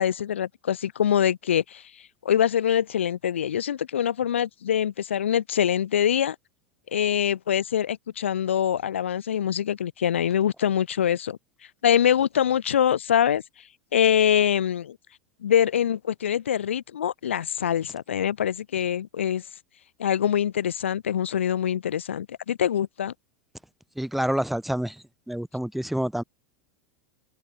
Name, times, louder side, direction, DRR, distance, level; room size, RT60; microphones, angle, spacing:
voice 1, 0.0-6.3 6.9-11.4 11.8-13.4 13.9-15.0 15.4-19.4 20.0-23.1, left 9 dB, 75° left, 1.3 m, -24 dB
voice 2, 24.0-26.2, right 1 dB, ahead, 2.0 m, -28 dB
open air
figure-of-eight pair, 85°, 7 cm